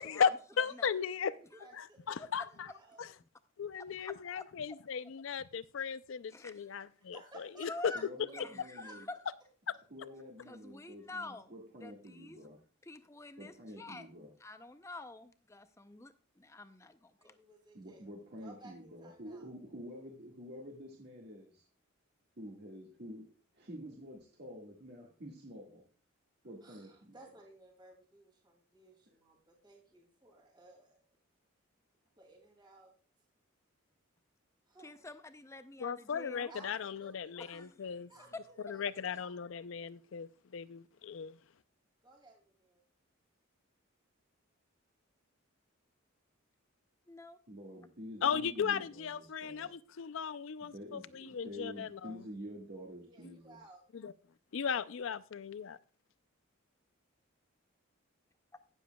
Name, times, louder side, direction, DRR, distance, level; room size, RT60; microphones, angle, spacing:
voice 1, 0.0-1.3 1.7-2.7 3.0-3.1 3.6-7.9 35.8-38.1 38.6-41.4 48.2-52.2 53.2-53.4 53.9-54.1 54.5-55.8, left 7 dB, 70° left, 0.4 m, -36 dB
voice 2, 1.0-3.0 7.0-8.0 8.8-8.9 10.1-10.2 17.2-18.1 18.4-19.5 26.6-31.0 32.2-32.9 34.7-35.0 36.5-37.6 38.1-39.3 42.0-42.8 53.0-53.9, right 2 dB, 20° right, 2.3 m, -58 dB
voice 3, 4.0-4.4 6.3-6.6 7.7-8.0 8.3-9.2 10.5-11.5 11.8-12.5 12.8-14.1 14.4-17.4 34.8-36.5 37.4-37.8 38.3-38.4 47.1-47.4, left 2 dB, 15° left, 0.6 m, -47 dB
voice 4, 7.9-9.0 9.9-12.6 13.4-14.3 17.7-21.6 22.4-23.2 23.5-25.8 26.4-27.1 47.5-49.7 50.7-53.6, equal, 50° right, 1.7 m, -48 dB
17.5 x 7.2 x 2.3 m
head